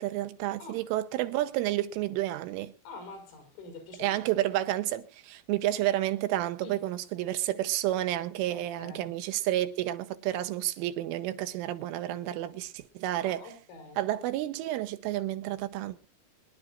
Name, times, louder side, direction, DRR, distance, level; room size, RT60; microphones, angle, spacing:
voice 1, 0.0-2.7 4.0-13.4 14.0-16.1, right 14 dB, 80° right, 3.3 m, -30 dB
voice 2, 2.9-4.2 6.6-6.8 8.5-9.1 13.2-14.0, left 2 dB, 85° left, 7.7 m, -46 dB
24.5 x 11.0 x 2.5 m
omnidirectional pair, 5.9 m